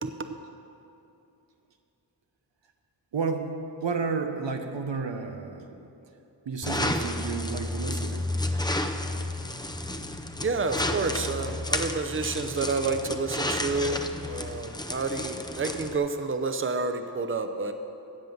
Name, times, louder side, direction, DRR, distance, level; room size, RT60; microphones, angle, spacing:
voice 1, 0.0-0.4 10.4-17.7, right 3 dB, 30° right, 7 dB, 0.7 m, -29 dB
voice 2, 3.1-5.8 6.4-8.3, right 4 dB, 85° right, 5 dB, 1.0 m, -31 dB
sound 1, 6.6-16.0, left 1 dB, 10° left, 0.7 m, -31 dB
15.5 x 5.4 x 7.8 m, 2.8 s
wide cardioid pair, 75°, 43 cm